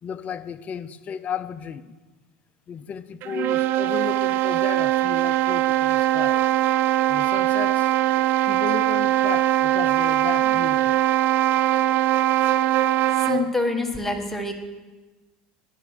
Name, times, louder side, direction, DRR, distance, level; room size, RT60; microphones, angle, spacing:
voice 1, 0.0-1.9 2.7-6.4 7.1-7.9 8.5-11.0, left 8 dB, 35° left, 0.5 m, -34 dB
sound 1, 3.2-13.5, right 13 dB, 55° right, 0.4 m, -21 dB
voice 2, 13.1-14.5, left 3 dB, 5° left, 1.4 m, -26 dB
10.5 x 6.0 x 6.2 m
hypercardioid pair, 90°, 4 cm